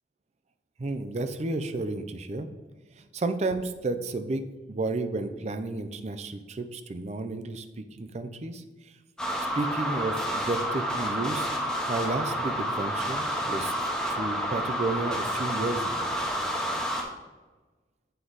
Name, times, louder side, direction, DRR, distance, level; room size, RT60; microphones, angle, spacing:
voice 1, 0.8-2.5 3.0-8.6 9.5-13.8 14.1-16.1, right 2 dB, 40° right, 10 dB, 0.4 m, -32 dB
sound 1, 9.2-17.0, equal, 5° left, 0.9 m, -29 dB
7.9 x 4.8 x 4.0 m, 1.2 s
head